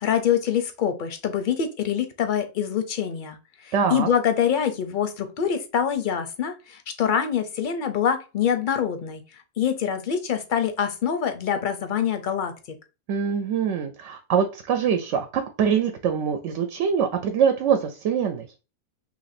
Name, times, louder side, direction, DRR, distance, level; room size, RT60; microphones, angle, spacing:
voice 1, 0.0-3.4 3.6-9.2 9.6-12.5, left 8 dB, 60° left, 8 dB, 0.6 m, -25 dB
voice 2, 3.7-4.1 13.1-18.5, right 7 dB, 90° right, 7 dB, 0.9 m, -24 dB
3.0 x 2.6 x 4.1 m, 0.31 s
omnidirectional pair, 1.2 m